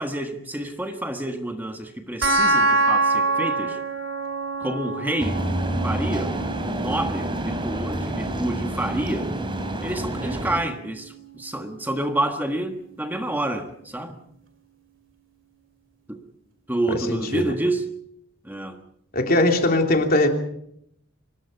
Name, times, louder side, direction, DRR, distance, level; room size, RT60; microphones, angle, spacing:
voice 1, 0.0-3.8 4.6-5.4 5.8-9.3 9.8-14.2 16.1-16.2 16.7-17.9 18.4-18.8, right 1 dB, 10° right, 5 dB, 1.4 m, -28 dB
sound 1, 2.2-13.2, right 2 dB, 70° right, 2.3 m, -28 dB
sound 2, 5.2-10.6, right 1 dB, 25° right, 3.2 m, -28 dB
voice 2, 16.9-17.5 19.1-20.3, left 1 dB, 50° left, 3 dB, 3.1 m, -20 dB
24.5 x 19.5 x 5.6 m, 0.72 s
head